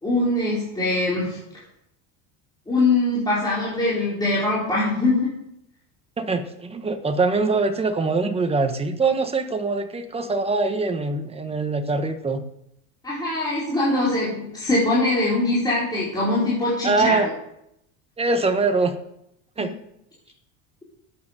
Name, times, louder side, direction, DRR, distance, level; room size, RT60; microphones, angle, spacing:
voice 1, 0.0-1.4 2.7-5.3 13.0-17.3 19.6-19.7, left 2 dB, 10° left, -8 dB, 4.7 m, -22 dB
voice 2, 6.2-12.4 16.8-17.3 18.2-18.9 19.6-19.7, right 3 dB, 15° right, 7 dB, 1.2 m, -23 dB
13.0 x 9.7 x 6.7 m, 0.79 s
cardioid pair, 140°, 39 cm